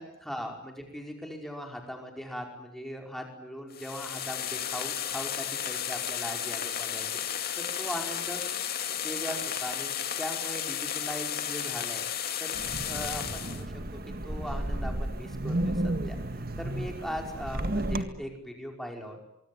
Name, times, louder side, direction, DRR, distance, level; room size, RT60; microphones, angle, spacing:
voice 1, 0.0-7.1 7.3-8.4 8.9-12.1 12.4-12.6 12.9-13.7 14.2-19.3, equal, ahead, 2 dB, 5.2 m, -39 dB
sound 1, 3.7-13.6, left 9 dB, 50° left, 2.6 m, -33 dB
Wind, 12.5-18.0, right 1 dB, 45° right, 1.8 m, -32 dB
24.5 x 24.5 x 8.9 m, 0.79 s
head